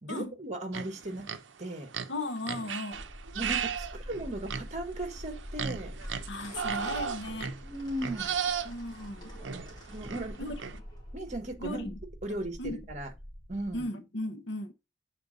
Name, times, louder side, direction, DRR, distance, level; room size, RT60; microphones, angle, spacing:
voice 1, 0.0-1.3 1.6-1.9 3.3-5.9 7.6-8.3 9.9-10.6 11.1-11.9 12.2-13.1 13.5-13.9, right 1 dB, 40° right, 1.3 m, -37 dB
sound 1, 0.7-1.5 1.9-10.8, right 7 dB, 75° right, 0.6 m, -36 dB
voice 2, 2.1-3.0 6.3-7.5 8.6-9.3 10.4-10.6 11.6-12.0 12.3-12.8 13.7-14.7, left 1 dB, 70° left, 0.8 m, -37 dB
sound 2, 2.9-13.8, equal, 20° right, 4.8 m, -45 dB
sound 3, 6.0-11.4, equal, 20° left, 2.3 m, -52 dB
7.1 x 4.3 x 3.9 m
head